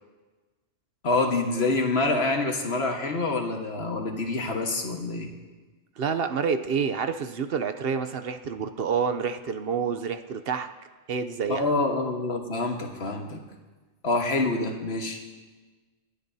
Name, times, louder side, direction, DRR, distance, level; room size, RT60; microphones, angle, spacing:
voice 1, 1.0-5.3 11.5-13.4 14.0-15.2, left 3 dB, 60° left, 2 dB, 1.7 m, -26 dB
voice 2, 6.0-10.7 11.1-11.7, right 6 dB, 60° right, 9 dB, 0.8 m, -28 dB
27.5 x 12.0 x 2.7 m, 1.3 s
omnidirectional pair, 1.2 m